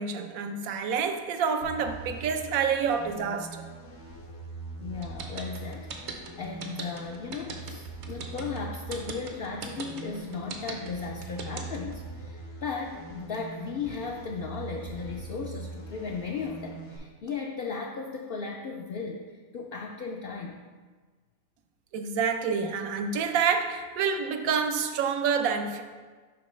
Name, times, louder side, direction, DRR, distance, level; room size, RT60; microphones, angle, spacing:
voice 1, 0.0-3.7 21.9-25.8, right 6 dB, 85° right, 7 dB, 1.0 m, -28 dB
sound 1, 1.6-17.0, right 3 dB, 90° left, 1.5 m, -42 dB
voice 2, 4.8-20.7, left 5 dB, 70° left, 0 dB, 0.5 m, -36 dB
sound 2, 5.0-11.9, right 5 dB, 60° right, 0.9 m, -38 dB
10.5 x 3.8 x 3.1 m, 1.4 s
omnidirectional pair, 1.4 m